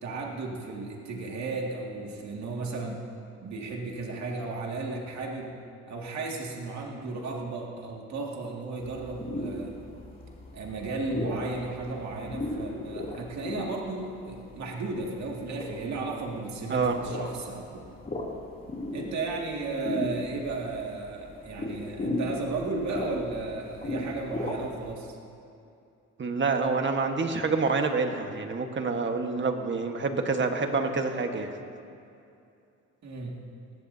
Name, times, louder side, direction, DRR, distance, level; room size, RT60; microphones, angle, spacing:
voice 1, 0.0-3.0 3.4-5.6 5.9-9.8 10.5-17.6 18.9-25.2 33.0-33.4, right 3 dB, 65° right, -1 dB, 2.2 m, -34 dB
sound 1, 8.8-24.9, left 1 dB, 30° left, 2.8 m, -37 dB
voice 2, 26.2-31.5, right 4 dB, 40° right, 5 dB, 1.4 m, -27 dB
19.5 x 16.0 x 2.8 m, 2.5 s
cardioid pair, 90°, 30 cm